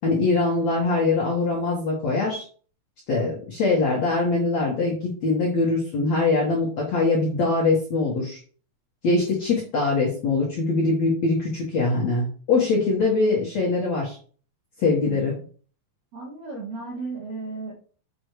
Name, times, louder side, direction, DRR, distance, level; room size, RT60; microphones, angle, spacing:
voice 1, 0.0-2.5 3.1-8.4 9.0-14.2 14.8-15.3, left 3 dB, 60° left, -4 dB, 1.9 m, -23 dB
voice 2, 15.1-15.4 16.1-17.7, right 3 dB, 60° right, -3 dB, 1.8 m, -35 dB
7.7 x 6.7 x 3.3 m, 0.42 s
omnidirectional pair, 5.5 m